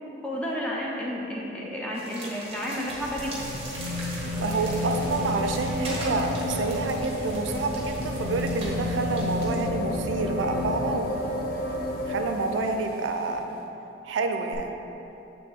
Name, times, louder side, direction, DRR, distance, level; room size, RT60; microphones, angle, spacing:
voice 1, 0.2-3.5, equal, 5° left, -4 dB, 0.6 m, -31 dB
sound 1, 1.9-9.7, right 2 dB, 30° right, 1.1 m, -41 dB
sound 2, 2.3-13.3 14.5-14.6, left 1 dB, 50° left, 0.5 m, -31 dB
sound 3, 3.7-9.5, equal, 85° left, 1.1 m, -40 dB
voice 2, 4.4-11.3 12.1-13.5 14.1-14.8, right 3 dB, 80° right, 5 dB, 0.4 m, -28 dB
7.6 x 3.4 x 3.6 m, 3.0 s
head